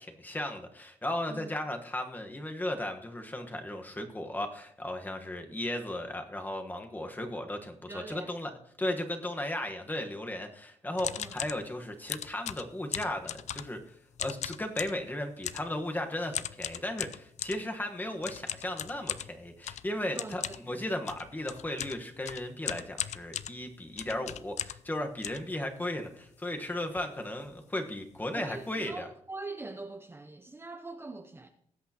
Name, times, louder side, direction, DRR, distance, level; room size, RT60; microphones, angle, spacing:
voice 1, 0.0-8.5 8.8-13.8 14.2-29.1, left 1 dB, 15° left, 1.2 m, -36 dB
voice 2, 7.9-8.3 11.2-11.4 20.1-20.8 28.3-31.5, right 3 dB, 20° right, 0.7 m, -43 dB
sound 1, 11.0-11.6 12.1-13.8 14.2-15.0 15.4-15.7 16.3-17.6 18.2-24.9 25.2-26.1 26.6-26.7 26.8-27.1 27.4-27.6 28.2-28.3 28.5-28.8, left 10 dB, 75° left, 0.4 m, -38 dB
19.5 x 8.5 x 2.9 m
wide cardioid pair, 125°, 12 cm